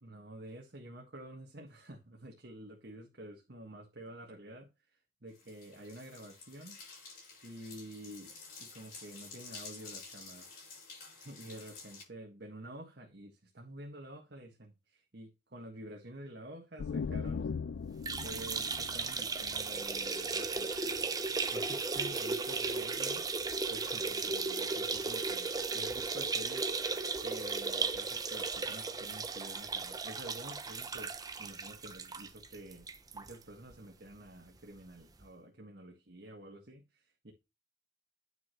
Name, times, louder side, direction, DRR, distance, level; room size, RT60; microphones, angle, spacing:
voice 1, 0.0-4.7 5.2-7.1 7.4-10.5 11.1-17.5 18.2-26.7 27.2-32.9 33.1-37.3, right 1 dB, 65° right, 1.6 m, -49 dB
sound 1, 5.3-12.0, left 4 dB, 55° left, 5.6 m, -51 dB
sound 2, 16.8-20.4, left 5 dB, 85° left, 0.4 m, -39 dB
sound 3, 17.9-33.3 33.7-33.8 34.1-34.2 35.2-35.3, right 4 dB, 20° right, 0.6 m, -36 dB
9.5 x 5.9 x 3.0 m
head